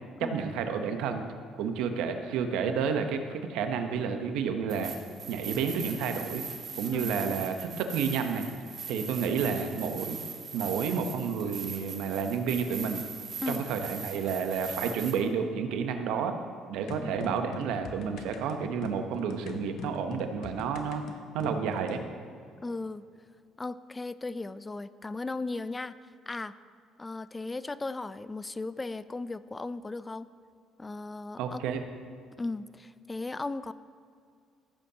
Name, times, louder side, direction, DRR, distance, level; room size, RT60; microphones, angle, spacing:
voice 1, 0.3-1.2 1.6-4.9 5.3-6.4 6.8-8.4 8.9-10.2 10.5-13.0 13.5-16.3 16.7-21.0 21.3-22.0 31.4-31.8, right 6 dB, 80° right, 6 dB, 0.8 m, -30 dB
sound 1, 4.7-15.2, right 6 dB, 55° right, 1.8 m, -40 dB
sound 2, 16.9-22.0, left 5 dB, 70° left, 0.7 m, -43 dB
voice 2, 22.6-23.0 23.6-25.9 26.3-26.5 27.0-30.3 30.8-31.6 32.4-33.7, left 3 dB, 20° left, 15 dB, 0.3 m, -36 dB
15.0 x 8.3 x 2.8 m, 2.3 s
supercardioid pair, 70°, 0 cm